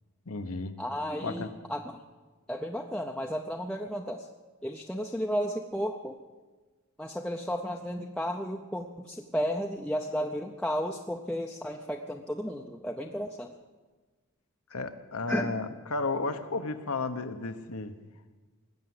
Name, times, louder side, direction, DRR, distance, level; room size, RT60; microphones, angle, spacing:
voice 1, 0.3-0.7 1.2-1.5 14.7-17.9, left 3 dB, 80° left, 8 dB, 1.1 m, -33 dB
voice 2, 0.8-1.8 2.5-4.2 4.6-6.1 7.0-13.5 15.3-15.6, equal, 5° left, 0 dB, 0.6 m, -33 dB
20.0 x 8.3 x 7.8 m, 1.3 s
head